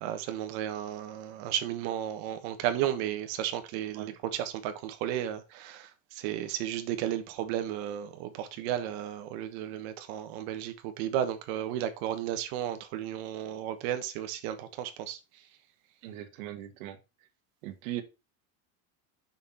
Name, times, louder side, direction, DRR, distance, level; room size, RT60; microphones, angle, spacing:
voice 1, 0.0-15.2, right 11 dB, 55° right, 1.3 m, -33 dB
voice 2, 16.0-17.0 17.6-18.0, right 13 dB, 80° right, 1.5 m, -39 dB
5.9 x 5.9 x 4.2 m
cardioid pair, 175°, 40 cm